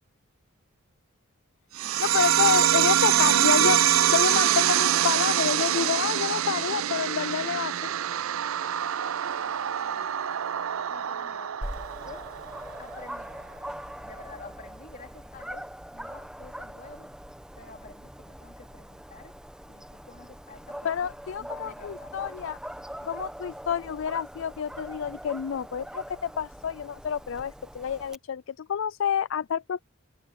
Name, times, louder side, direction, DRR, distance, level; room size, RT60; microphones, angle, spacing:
sound 1, 1.8-12.8, right 11 dB, 80° right, 0.5 m, -25 dB
voice 1, 2.0-3.8 4.1-7.9 20.8-22.6 23.0-29.8, left 7 dB, 65° left, 0.4 m, -29 dB
voice 2, 9.4-10.4 10.9-11.6 12.0-12.3 12.8-13.4 14.0-17.1 17.5-19.4 19.7-20.9 21.3-22.2, left 3 dB, 40° left, 4.0 m, -49 dB
Dog, 11.6-28.2, equal, 5° right, 1.1 m, -42 dB
head